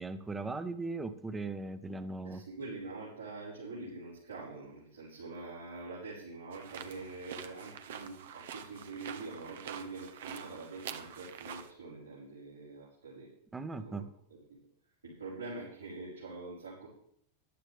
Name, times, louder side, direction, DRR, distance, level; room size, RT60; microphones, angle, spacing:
voice 1, 0.0-2.4 13.5-14.1, right 3 dB, 10° right, 11 dB, 1.2 m, -38 dB
voice 2, 2.2-13.3 13.7-14.0 14.3-14.6 15.0-16.9, right 3 dB, 75° right, -8 dB, 5.4 m, -45 dB
sound 1, 6.5-11.7, right 8 dB, 60° right, 1.1 m, -46 dB
15.0 x 11.5 x 3.5 m, 0.69 s
figure-of-eight pair, 90°, 0 cm